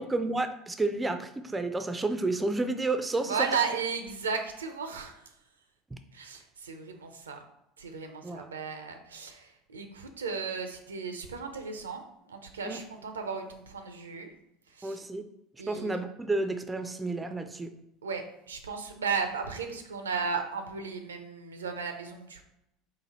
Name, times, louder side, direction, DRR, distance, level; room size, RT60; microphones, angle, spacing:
voice 1, 0.0-3.5 5.9-6.0 8.2-8.5 12.6-12.8 14.8-15.2 15.7-17.7, right 2 dB, 15° right, 9 dB, 0.4 m, -31 dB
voice 2, 3.3-5.2 6.1-7.4 7.8-12.0 12.3-14.3 14.7-15.0 15.6-16.0 18.0-22.4, right 5 dB, 80° right, 6 dB, 0.5 m, -35 dB
4.0 x 2.7 x 4.1 m, 0.83 s
figure-of-eight pair, 70°, 0 cm